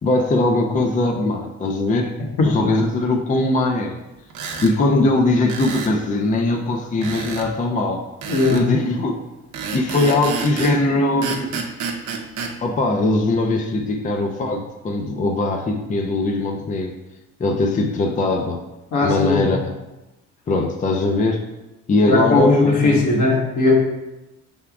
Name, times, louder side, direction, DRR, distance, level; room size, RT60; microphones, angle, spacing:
voice 1, 0.0-2.2 2.4-4.0 4.6-8.0 8.5-9.2 9.7-11.6 12.6-17.0 17.4-18.6 19.0-19.7 20.5-21.5 21.9-23.0, left 2 dB, 25° left, 3 dB, 0.4 m, -20 dB
sound 1, 4.3-4.7 5.5-6.0 7.0-7.5 8.2-8.7 9.5-10.8 11.2-12.5, right 5 dB, 80° right, 0.7 m, -29 dB
voice 2, 8.3-8.7 18.9-19.6 22.1-23.7, left 2 dB, 75° left, -3 dB, 1.3 m, -18 dB
5.7 x 3.5 x 2.3 m, 1.0 s
cardioid pair, 90°, 30 cm